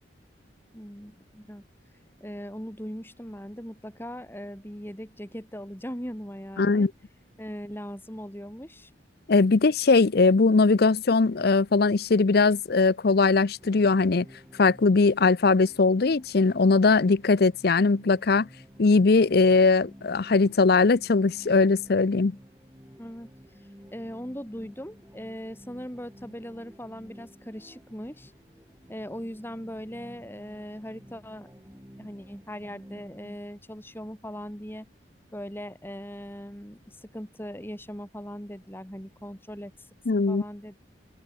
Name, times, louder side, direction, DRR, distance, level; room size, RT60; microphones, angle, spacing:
voice 1, 0.7-1.6 2.2-6.9 7.4-8.9 23.0-23.3 23.9-28.3 28.9-31.5 32.0-34.9 35.3-39.9 40.3-40.8, equal, 10° left, 4.7 m, -39 dB
voice 2, 6.6-6.9 9.3-14.3 14.6-18.5 18.8-22.4 40.1-40.4, left 4 dB, 55° left, 0.6 m, -20 dB
sound 1, 13.6-33.4, equal, 15° right, 5.9 m, -52 dB
open air
head